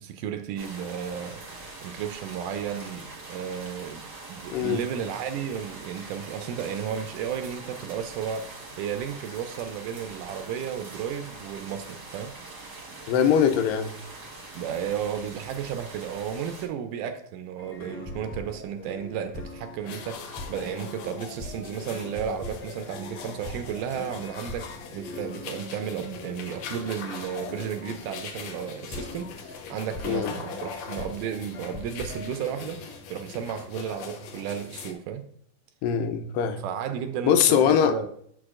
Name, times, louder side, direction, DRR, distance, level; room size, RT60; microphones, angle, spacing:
voice 1, 0.0-1.4 1.8-12.3 14.5-35.2 36.6-38.1, right 8 dB, 80° right, 2.0 m, -33 dB
sound 1, 0.6-16.7, right 3 dB, 50° right, 1.2 m, -43 dB
voice 2, 4.5-4.8 13.1-13.9 30.0-30.3 35.8-36.6 37.2-38.0, left 8 dB, 90° left, 2.3 m, -22 dB
sound 2, 17.6-32.8, left 1 dB, 40° left, 1.1 m, -42 dB
sound 3, 19.8-34.9, left 6 dB, 75° left, 1.7 m, -41 dB
6.7 x 6.2 x 2.4 m
omnidirectional pair, 3.9 m